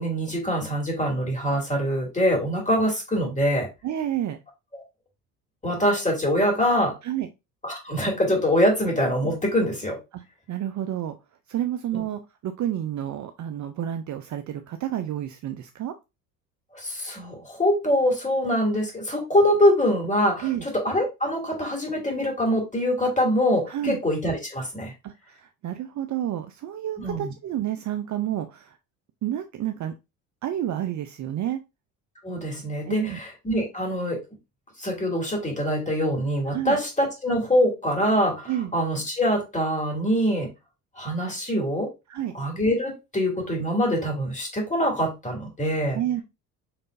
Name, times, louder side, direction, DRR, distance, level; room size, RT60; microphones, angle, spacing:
voice 1, 0.0-3.7 4.7-4.8 5.6-7.0 7.6-10.0 11.9-12.0 16.7-24.9 27.0-27.3 32.2-34.2 34.8-40.5 41.0-41.9 42.3-46.0, equal, 15° left, 2.6 m, -24 dB
voice 2, 3.8-4.4 7.0-7.3 10.1-11.1 11.5-16.0 20.4-20.6 23.7-24.0 25.0-28.8 29.2-29.9 30.4-31.6 32.9-33.2 36.5-36.8 38.5-38.7 42.1-42.4 45.9-46.2, right 11 dB, 40° right, 0.6 m, -30 dB
5.9 x 3.3 x 2.6 m
hypercardioid pair, 70°, 45 cm